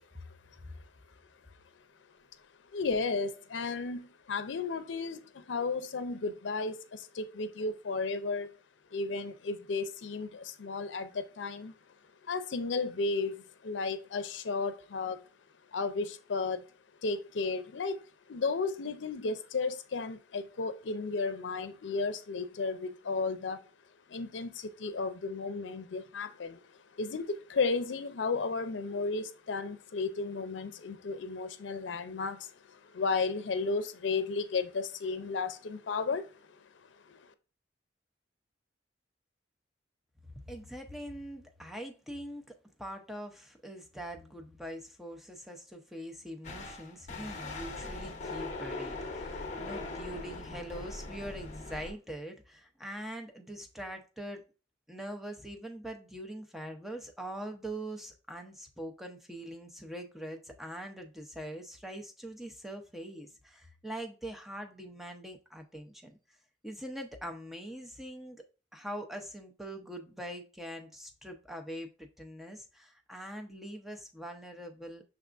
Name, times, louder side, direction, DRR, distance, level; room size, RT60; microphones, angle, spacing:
voice 1, 2.7-8.5 8.9-11.7 12.2-15.2 15.7-16.7 17.0-23.6 24.1-26.6 26.9-36.4 37.1-37.3, left 4 dB, 85° left, 0.5 m, -34 dB
voice 2, 40.2-42.4 42.8-54.4 54.9-66.2 66.6-68.4 68.7-75.0, right 1 dB, ahead, 0.6 m, -43 dB
sound 1, 46.4-51.9, left 3 dB, 40° left, 0.8 m, -40 dB
5.9 x 3.5 x 2.5 m
head